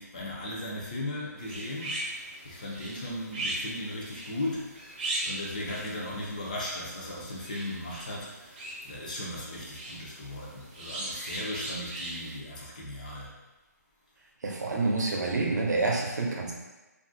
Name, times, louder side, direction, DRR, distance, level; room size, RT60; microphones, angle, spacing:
voice 1, 0.0-2.2 2.4-8.6 8.9-13.3, left 1 dB, 25° left, -4 dB, 0.5 m, -37 dB
sound 1, 1.4-12.4, right 1 dB, 30° right, 0.4 m, -39 dB
voice 2, 14.4-16.5, right 3 dB, 75° right, -1 dB, 0.6 m, -28 dB
2.6 x 2.4 x 2.5 m, 1.1 s
hypercardioid pair, 175°, 9 cm